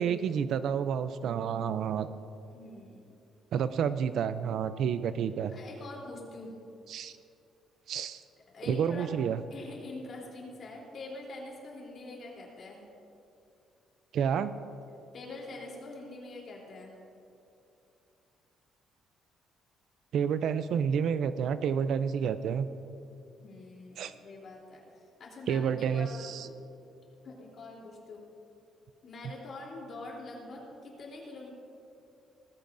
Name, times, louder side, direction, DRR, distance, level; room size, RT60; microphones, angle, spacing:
voice 1, 0.0-2.1 3.5-5.5 6.9-7.1 7.9-8.2 8.7-9.4 14.1-14.5 20.1-22.7 24.0-24.1 25.5-26.5, right 7 dB, 60° right, 12 dB, 0.4 m, -29 dB
voice 2, 2.5-3.2 5.5-6.5 8.5-9.1 9.5-12.8 15.1-16.9 23.4-24.8 25.2-26.5 27.2-28.2 29.0-31.5, left 2 dB, 40° left, -3 dB, 3.3 m, -44 dB
19.0 x 15.0 x 2.6 m, 2.6 s
cardioid pair, 155°, 0 cm